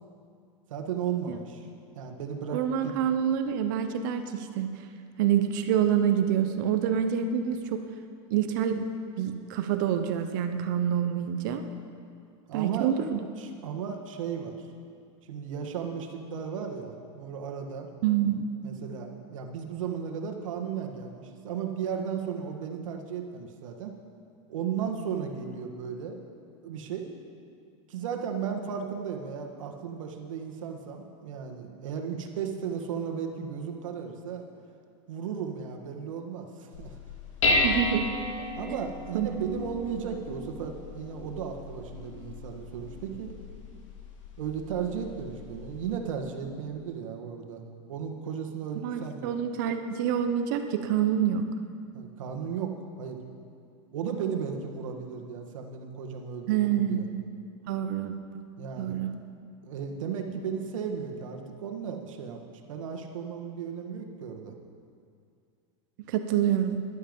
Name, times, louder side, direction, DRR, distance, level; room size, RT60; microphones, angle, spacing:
voice 1, 0.7-1.7 2.0-2.9 12.5-12.9 13.4-14.6 15.3-17.9 18.6-23.9 24.5-26.2 26.6-27.2 27.9-34.5 35.1-36.9 38.6-43.3 44.4-47.6 47.9-49.3 51.9-53.2 53.9-57.0 58.6-59.0 59.6-62.4 62.7-64.6, right 7 dB, 85° right, 3 dB, 1.6 m, -35 dB
voice 2, 2.5-4.7 5.2-7.8 8.3-8.9 9.2-11.7 12.5-13.2 18.0-18.4 37.6-38.1 39.1-39.3 48.8-51.4 56.5-57.2 57.7-58.1 58.8-59.1 66.1-66.8, right 9 dB, 40° right, 8 dB, 0.7 m, -27 dB
Dishes pots and pans, 36.7-46.0, left 2 dB, 75° left, 2.4 m, -33 dB
13.0 x 11.5 x 5.4 m, 2.3 s
supercardioid pair, 180°, 16 cm